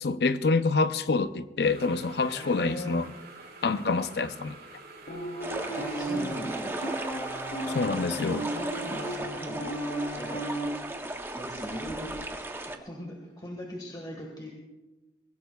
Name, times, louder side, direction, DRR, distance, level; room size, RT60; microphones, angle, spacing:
voice 1, 0.0-3.1 3.6-4.6 7.7-8.5, left 3 dB, 65° left, 0.6 m, -26 dB
sound 1, 1.6-9.2, right 3 dB, 65° right, 5.3 m, -48 dB
voice 2, 2.2-3.0 5.5-7.0 8.9-9.7 10.2-10.5 11.3-12.2 12.6-14.5, equal, 25° left, 1.6 m, -40 dB
sound 2, 5.1-10.7, right 1 dB, 80° left, 3.4 m, -34 dB
sound 3, 5.4-12.8, right 2 dB, 15° right, 0.8 m, -36 dB
23.0 x 16.5 x 2.3 m
head